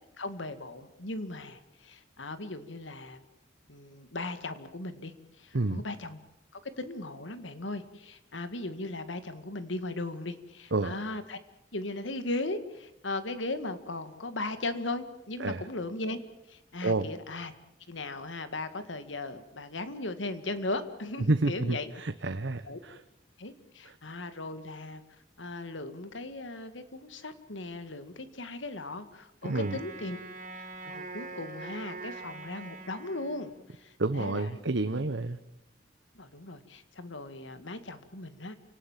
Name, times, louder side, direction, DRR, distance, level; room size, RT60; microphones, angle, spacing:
voice 1, 0.2-3.2 3.7-6.2 6.5-11.4 11.7-16.2 16.5-17.5 17.9-21.9 22.6-22.8 23.4-25.0 25.4-30.2 30.6-34.6 36.2-38.6, left 2 dB, 80° left, 11 dB, 2.0 m, -37 dB
voice 2, 21.3-23.0 29.5-29.8 34.0-35.4, right 2 dB, 70° right, 9 dB, 1.0 m, -29 dB
Wind instrument woodwind instrument, 29.4-33.8, right 3 dB, 45° right, 3.8 m, -43 dB
29.5 x 18.5 x 7.4 m, 0.87 s
head